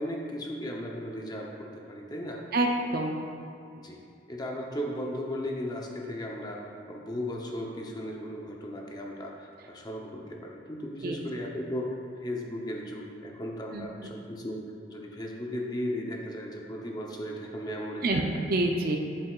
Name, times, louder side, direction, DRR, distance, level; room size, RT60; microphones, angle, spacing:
voice 1, 0.0-2.5 3.8-4.0 4.3-14.6 14.9-18.4, equal, 20° left, -1 dB, 0.7 m, -36 dB
voice 2, 2.5-3.2 11.0-11.2 13.7-14.1 18.0-19.0, right 2 dB, 50° right, 2 dB, 0.5 m, -27 dB
8.1 x 7.6 x 2.4 m, 2.5 s
head